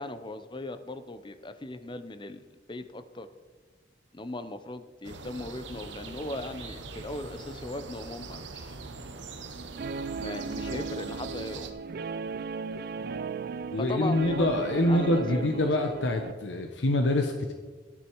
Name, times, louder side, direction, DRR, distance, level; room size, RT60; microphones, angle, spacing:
voice 1, 0.0-2.4 2.7-3.3 4.1-8.8 10.2-11.7 13.8-15.6, left 2 dB, 25° left, 11 dB, 0.7 m, -38 dB
sound 1, 5.0-11.7, right 3 dB, 85° right, 1.0 m, -42 dB
Guitar, 9.8-16.3, right 4 dB, 55° right, 0.4 m, -36 dB
voice 2, 13.7-17.5, left 1 dB, 80° left, 5 dB, 0.9 m, -26 dB
13.0 x 9.7 x 4.6 m, 1.4 s
head